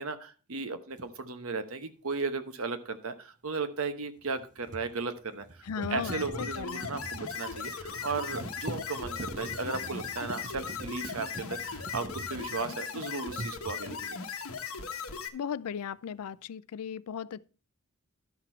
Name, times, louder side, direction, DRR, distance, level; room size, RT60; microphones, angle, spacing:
voice 1, 0.0-5.5 5.8-14.2, right 4 dB, 70° right, 1.0 m, -36 dB
sound 1, 1.0-1.1 4.2-13.0 13.3-14.1, right 2 dB, 35° right, 0.6 m, -43 dB
voice 2, 5.6-6.9 15.3-17.5, left 7 dB, 90° left, 0.4 m, -37 dB
sound 2, 6.0-15.3, left 6 dB, 70° left, 1.0 m, -38 dB
12.0 x 5.9 x 4.5 m
head